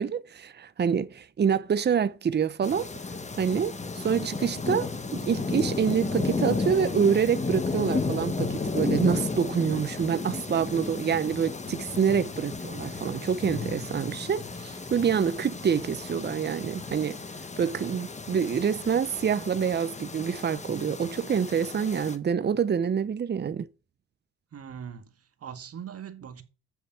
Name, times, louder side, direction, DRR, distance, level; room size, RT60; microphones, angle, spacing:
voice 1, 0.0-2.9 3.4-17.2 17.6-23.7, right 7 dB, 35° right, 0.8 m, -26 dB
sound 1, 2.6-22.2, left 3 dB, 25° left, 1.3 m, -33 dB
voice 2, 24.5-26.4, right 8 dB, 50° right, 1.8 m, -42 dB
7.1 x 6.9 x 7.4 m
cardioid pair, 90°, 30 cm